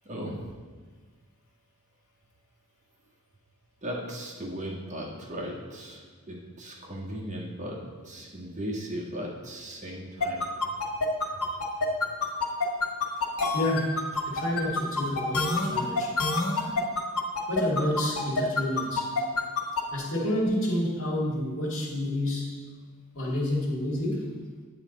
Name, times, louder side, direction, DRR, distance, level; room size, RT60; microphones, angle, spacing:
voice 1, 0.0-0.5 3.8-10.5, equal, 35° right, -3 dB, 1.6 m, -37 dB
sound 1, 10.2-19.8, left 4 dB, 85° left, 1.6 m, -27 dB
voice 2, 13.5-16.1 17.5-19.1 19.9-22.6 23.1-24.3, left 1 dB, 65° left, -2 dB, 2.1 m, -29 dB
9.1 x 8.6 x 4.1 m, 1.5 s
head